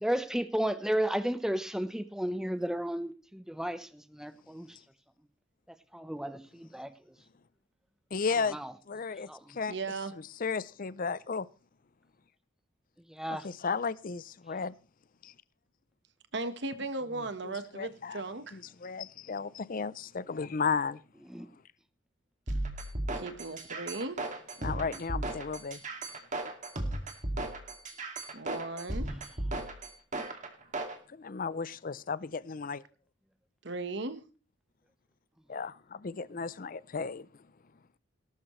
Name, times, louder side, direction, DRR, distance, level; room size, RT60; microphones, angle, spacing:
voice 1, 0.0-4.7 5.9-6.9 8.5-8.7 9.3-9.6 13.1-13.5 21.3-21.5, right 1 dB, 5° right, 0.9 m, -33 dB
voice 2, 8.1-8.6 8.9-9.7 10.1-11.5 13.3-14.7 15.2-15.3 17.4-18.2 18.5-21.0 24.6-25.8 31.1-32.8 35.5-37.3, left 5 dB, 45° left, 0.5 m, -34 dB
voice 3, 9.7-10.1 16.3-18.6 23.2-24.2 28.3-29.1 33.6-34.2, right 3 dB, 65° right, 1.3 m, -36 dB
sound 1, 22.5-31.0, right 1 dB, 40° right, 2.3 m, -35 dB
18.5 x 12.0 x 3.2 m
head